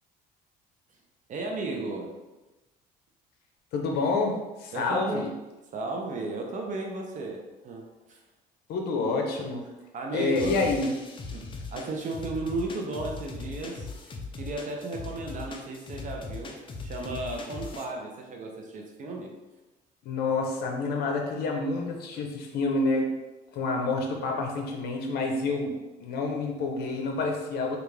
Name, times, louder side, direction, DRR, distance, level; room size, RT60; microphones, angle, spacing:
voice 1, 1.3-2.1 4.7-5.3 5.7-8.2 9.9-10.6 11.3-14.1 14.4-19.3, right 2 dB, 50° right, 1 dB, 0.6 m, -35 dB
voice 2, 3.7-4.3 4.6-5.3 8.7-9.6 10.1-10.9 20.0-23.1 23.5-25.7 26.0-27.8, left 3 dB, 70° left, 2 dB, 0.7 m, -28 dB
sound 1, 10.4-17.9, left 3 dB, 30° left, 0.4 m, -39 dB
3.4 x 2.4 x 3.2 m, 1.1 s
cardioid pair, 110°, 17 cm